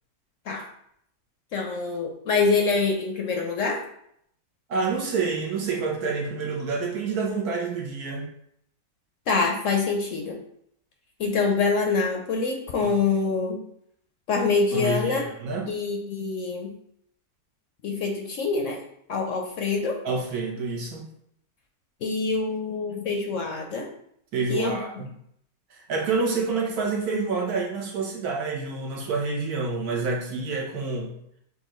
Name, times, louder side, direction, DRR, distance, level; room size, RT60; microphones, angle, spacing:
voice 1, 1.5-3.8 9.3-10.4 11.2-13.6 14.3-15.3 15.7-16.7 17.8-18.8 19.1-20.0 22.0-23.9 24.5-24.8, left 4 dB, 65° left, 1 dB, 0.9 m, -25 dB
voice 2, 4.7-8.3 12.8-12.9 14.7-15.7 20.0-21.0 24.3-25.1 25.7-31.1, right 4 dB, 70° right, 0 dB, 1.4 m, -28 dB
6.7 x 2.5 x 3.0 m, 0.71 s
omnidirectional pair, 1.7 m